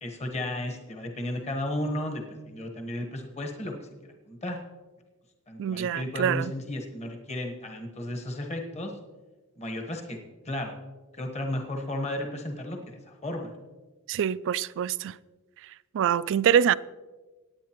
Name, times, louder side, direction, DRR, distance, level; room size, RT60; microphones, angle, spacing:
voice 1, 0.0-3.9 4.3-4.6 5.5-8.9 9.6-10.2 10.4-10.7 11.1-13.5, left 1 dB, 30° left, 1.2 m, -34 dB
voice 2, 5.6-6.5 14.1-15.2 15.9-16.8, right 9 dB, 60° right, 0.3 m, -25 dB
18.0 x 9.1 x 3.0 m
head